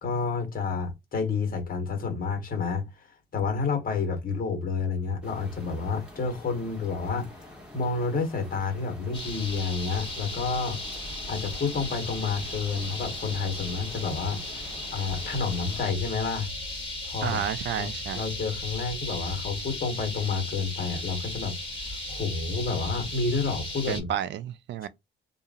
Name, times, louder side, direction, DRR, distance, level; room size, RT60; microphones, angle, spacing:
voice 1, 0.0-10.8 11.3-14.6 14.9-16.5 17.0-17.4 17.8-21.6 22.1-24.1, left 4 dB, 45° left, 1.5 m, -30 dB
sound 1, 5.2-15.8, left 1 dB, 5° right, 1.5 m, -48 dB
sound 2, 9.1-24.0, left 2 dB, 25° left, 1.7 m, -36 dB
voice 2, 17.2-18.2 23.9-24.9, right 10 dB, 65° right, 0.4 m, -31 dB
2.8 x 2.5 x 2.4 m
cardioid pair, 90°, 20 cm